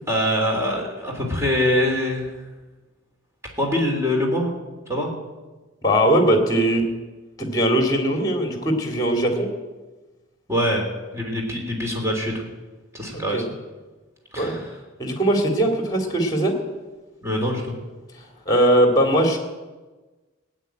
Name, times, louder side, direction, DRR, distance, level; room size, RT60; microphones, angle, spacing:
voice 1, 0.1-2.3 3.6-4.5 4.9-5.1 10.5-10.8 11.1-12.3 12.9-13.4 14.3-14.6 17.2-17.7, left 1 dB, 15° right, 0 dB, 3.3 m, -23 dB
voice 2, 5.8-6.8 7.4-9.5 13.1-13.4 14.4-14.6 15.0-16.5 18.5-19.4, right 1 dB, 20° left, 4 dB, 2.4 m, -20 dB
16.0 x 9.2 x 9.0 m, 1.2 s
head